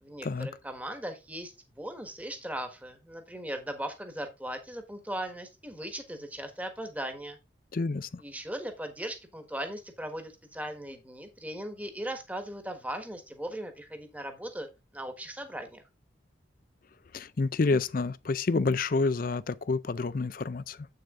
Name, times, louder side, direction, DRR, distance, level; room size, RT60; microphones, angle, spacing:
voice 1, 0.0-7.4 8.2-14.7 14.9-15.8, right 1 dB, 10° right, 1.4 m, -38 dB
voice 2, 7.7-8.2 17.1-20.8, left 3 dB, 45° left, 0.4 m, -28 dB
8.3 x 6.7 x 3.7 m
head